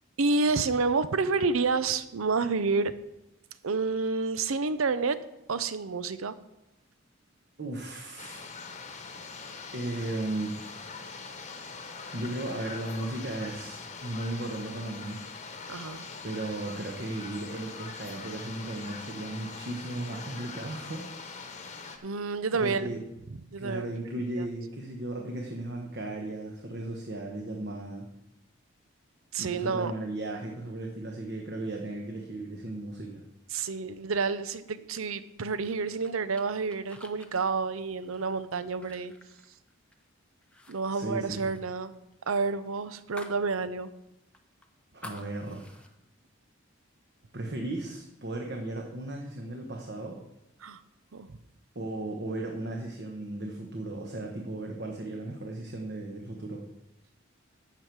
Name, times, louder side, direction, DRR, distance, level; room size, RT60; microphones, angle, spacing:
voice 1, 0.2-2.9 3.6-5.2 5.5-6.3 15.7-16.0 22.0-23.0 23.3-24.5 29.3-29.9 33.5-39.1 40.7-41.9 42.3-43.9 50.6-50.8 51.1-51.3, right 4 dB, 85° right, 13 dB, 0.6 m, -29 dB
voice 2, 7.6-8.5 9.7-10.8 12.1-15.2 16.2-21.1 22.5-23.0 23.6-28.1 29.4-33.2 40.9-41.6 44.9-45.9 47.3-50.2 51.7-56.7, right 2 dB, 50° right, 1 dB, 1.1 m, -36 dB
sound 1, 8.2-22.0, left 4 dB, 35° left, 1.1 m, -42 dB
sound 2, 35.4-40.1 40.4-40.8 41.0-43.5 43.8-43.9 44.3-45.9, left 2 dB, 5° left, 0.7 m, -50 dB
12.0 x 7.6 x 4.7 m, 0.90 s
head